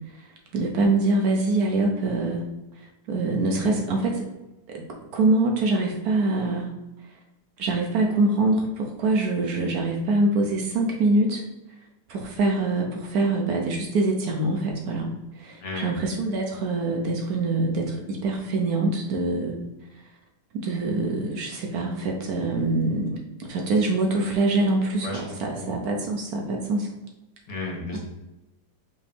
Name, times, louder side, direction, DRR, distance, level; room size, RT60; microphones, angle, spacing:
voice 1, 0.5-2.4 2.8-4.2 4.7-4.8 5.1-6.7 7.6-11.4 12.1-15.1 15.4-19.6 20.5-26.9, right 2 dB, 70° right, 1 dB, 1.1 m, -24 dB
voice 2, 15.6-16.0 25.0-25.8 27.5-28.0, left 2 dB, 65° left, -2 dB, 1.7 m, -34 dB
5.0 x 2.8 x 3.3 m, 1.0 s
omnidirectional pair, 1.9 m